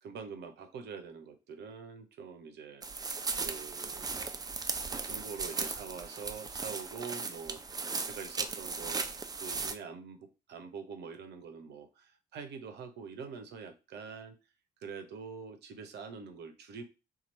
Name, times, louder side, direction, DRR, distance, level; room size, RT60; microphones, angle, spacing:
voice 1, 0.0-2.9 3.4-4.1 4.9-7.6 8.0-14.4 14.8-16.8, right 5 dB, 55° right, 8 dB, 0.7 m, -45 dB
sound 1, 2.8-9.7, right 4 dB, 20° right, 0.5 m, -37 dB
2.9 x 2.4 x 4.0 m, 0.29 s
figure-of-eight pair, 45°, 21 cm